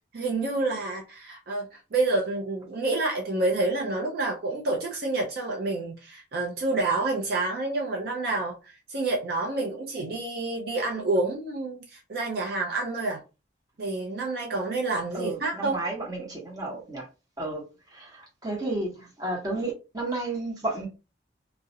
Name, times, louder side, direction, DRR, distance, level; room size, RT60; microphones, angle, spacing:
voice 1, 0.1-13.2 13.8-15.8, right 2 dB, 55° right, 0.5 m, -28 dB
voice 2, 15.1-17.1 17.4-17.6 17.9-20.9, right 2 dB, 20° right, 0.8 m, -32 dB
2.3 x 2.0 x 2.7 m
head